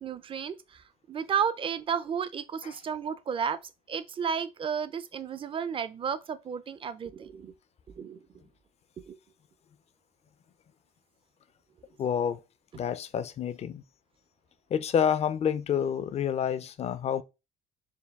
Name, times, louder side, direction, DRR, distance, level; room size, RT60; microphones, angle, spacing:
voice 1, 0.0-3.6 3.9-7.5 8.0-8.2 9.1-9.2, right 7 dB, 30° right, 0.4 m, -32 dB
voice 2, 12.0-12.4 12.8-13.8 14.7-17.2, left 8 dB, 40° left, 0.4 m, -28 dB
4.6 x 2.3 x 3.4 m
cardioid pair, 110°, 17 cm